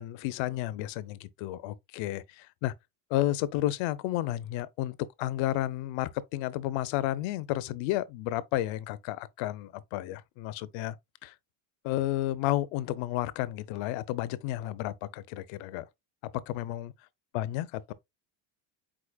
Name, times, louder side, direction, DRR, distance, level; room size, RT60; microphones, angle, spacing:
voice 1, 0.0-2.7 3.1-11.0 11.2-11.3 11.8-15.9 16.3-16.9 17.3-17.9, left 14 dB, 70° left, 0.6 m, -32 dB
4.9 x 4.2 x 2.2 m
cardioid pair, 150°, 48 cm